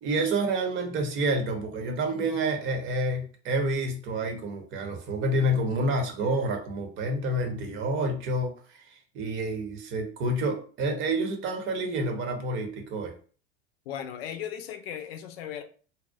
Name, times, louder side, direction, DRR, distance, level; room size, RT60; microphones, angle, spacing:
voice 1, 0.0-13.2, right 1 dB, 40° right, 0.7 m, -28 dB
voice 2, 13.9-15.6, left 9 dB, 70° left, 0.5 m, -37 dB
2.7 x 2.0 x 2.2 m
hypercardioid pair, 85°, 32 cm